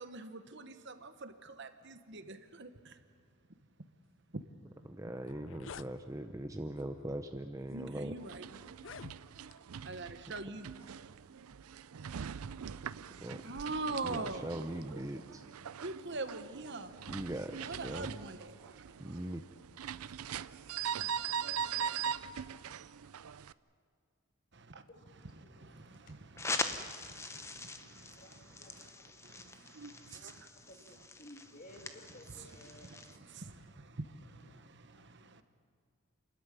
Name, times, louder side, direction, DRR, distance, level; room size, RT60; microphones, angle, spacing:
voice 1, 0.0-3.0 7.7-8.5 9.8-10.7 13.4-14.5 15.8-16.9 17.6-18.6 24.5-26.5 26.8-30.5 30.9-31.1 31.7-35.4, right 3 dB, 55° right, 1.1 m, -44 dB
sound 1, 4.8-4.9 5.2-5.9 6.8-7.0 7.7-7.8 8.7-9.6, left 6 dB, 60° left, 0.5 m, -49 dB
voice 2, 4.9-8.1 13.2-13.4 14.0-15.4 17.1-18.1 19.0-19.4, right 1 dB, 15° right, 0.6 m, -40 dB
sound 2, 8.2-23.5, right 8 dB, 90° right, 0.5 m, -42 dB
voice 3, 24.9-29.7 30.6-33.3 34.5-34.7 34.9-35.2, left 1 dB, 40° left, 2.0 m, -58 dB
sound 3, 26.4-33.2, left 3 dB, 15° left, 0.9 m, -42 dB
28.5 x 13.5 x 9.9 m
head